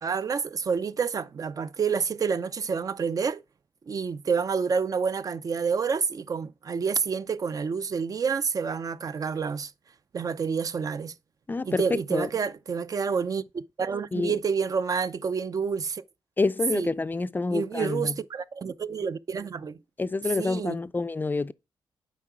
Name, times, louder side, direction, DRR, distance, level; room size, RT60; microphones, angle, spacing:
voice 1, 0.0-3.4 3.9-9.7 10.1-11.1 11.6-16.0 16.7-16.9 17.5-19.8 20.4-20.8, right 6 dB, 45° right, 0.5 m, -28 dB
voice 2, 11.5-12.3 14.1-14.3 16.4-18.1 20.0-21.5, left 3 dB, 20° left, 0.4 m, -27 dB
7.4 x 4.7 x 4.5 m
cardioid pair, 110°, 9 cm